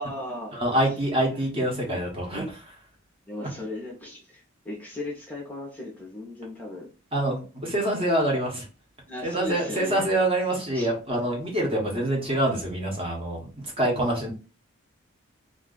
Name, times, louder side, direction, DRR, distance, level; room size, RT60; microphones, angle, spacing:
voice 1, 0.0-0.9 1.3-1.4 1.7-1.8 3.3-6.9 9.1-10.1 10.7-10.9, left 1 dB, 5° left, -2 dB, 0.6 m, -36 dB
voice 2, 0.5-2.6 3.4-3.5 7.1-7.4 7.6-8.6 9.2-13.4 13.8-14.3, right 1 dB, 25° right, -1 dB, 0.9 m, -25 dB
2.4 x 2.3 x 3.7 m, 0.35 s
head